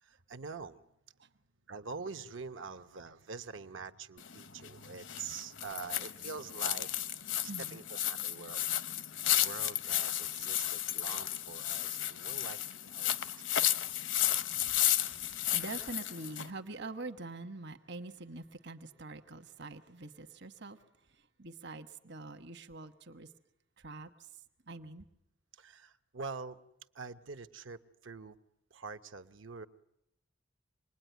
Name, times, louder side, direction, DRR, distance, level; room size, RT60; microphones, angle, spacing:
voice 1, 0.0-0.8 1.7-6.9 7.4-8.6 9.2-13.6 25.5-26.6 26.9-28.4 28.7-29.7, right 4 dB, 80° right, 9 dB, 1.0 m, -45 dB
sound 1, 4.2-16.5, left 12 dB, 70° left, 0.9 m, -33 dB
voice 2, 7.4-7.8 15.1-20.8 21.4-23.3 23.8-24.1 24.7-25.0, right 2 dB, 60° right, 7 dB, 1.2 m, -45 dB
26.5 x 20.5 x 9.3 m, 0.87 s
head